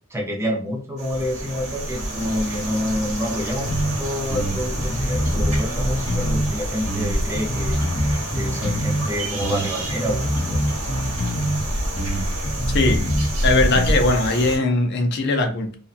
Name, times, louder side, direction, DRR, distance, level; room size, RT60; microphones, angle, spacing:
voice 1, 0.1-7.8 8.3-10.7, equal, 10° right, -2 dB, 0.5 m, -28 dB
sound 1, 1.0-14.6, right 1 dB, 85° right, 1.2 m, -27 dB
sound 2, 3.7-3.9 4.3-6.5 6.8-9.1 9.4-11.6 11.9-13.9, equal, 15° left, 1.3 m, -25 dB
voice 2, 13.4-15.7, left 2 dB, 50° left, 4 dB, 0.5 m, -20 dB
2.6 x 2.2 x 2.4 m, 0.40 s
head